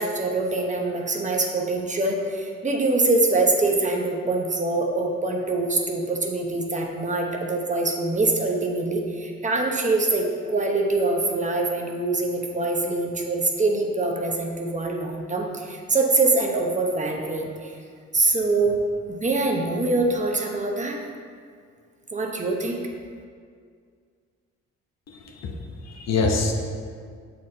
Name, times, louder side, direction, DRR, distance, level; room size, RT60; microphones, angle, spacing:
voice 1, 0.0-17.7 18.1-18.8 19.1-21.0 22.1-22.9, right 2 dB, 25° right, 1 dB, 0.8 m, -24 dB
voice 2, 25.1-26.5, left 3 dB, 60° left, 2 dB, 0.9 m, -26 dB
7.0 x 4.3 x 3.9 m, 2.1 s
cardioid pair, 90°, 30 cm